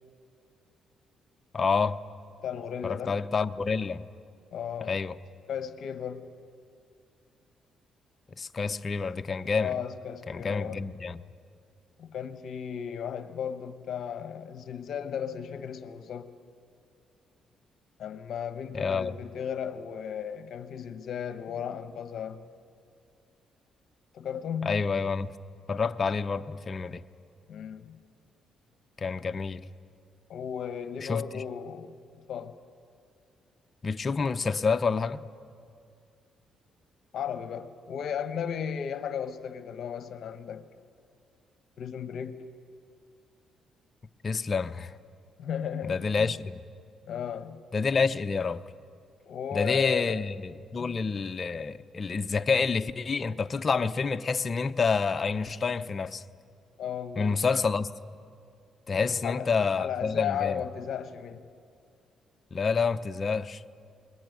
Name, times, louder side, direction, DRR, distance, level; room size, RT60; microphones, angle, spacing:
voice 1, 1.5-2.0 2.8-4.0 4.9-5.2 8.4-9.8 10.3-11.2 18.7-19.1 24.6-25.3 25.7-27.0 29.0-29.6 31.0-31.4 33.8-35.2 44.2-44.9 45.8-46.6 47.7-48.6 49.5-56.2 57.2-57.9 58.9-60.6 62.5-63.6, left 5 dB, 35° left, 0.7 m, -28 dB
voice 2, 2.4-3.2 4.5-5.0 5.5-6.3 9.6-10.8 12.0-16.3 18.0-22.4 24.1-24.8 27.5-28.0 30.3-32.0 32.3-32.5 37.1-40.6 41.8-42.4 45.4-46.3 47.1-47.6 49.3-50.3 50.8-51.0 56.8-57.4 58.9-61.5, left 8 dB, 65° left, 1.0 m, -35 dB
22.0 x 21.0 x 9.3 m
cardioid pair, 90°, 0 cm